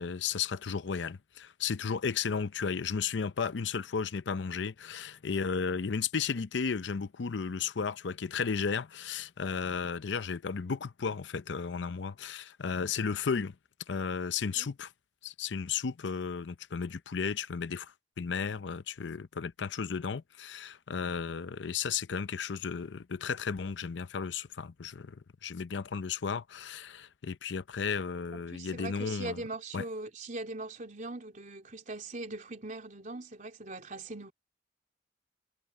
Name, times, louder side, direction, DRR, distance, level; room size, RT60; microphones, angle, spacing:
voice 1, 0.0-13.5 13.9-14.9 15.2-29.4 29.7-29.8, left 6 dB, 85° left, 0.6 m, -34 dB
voice 2, 28.3-34.3, right 2 dB, 45° right, 3.6 m, -41 dB
head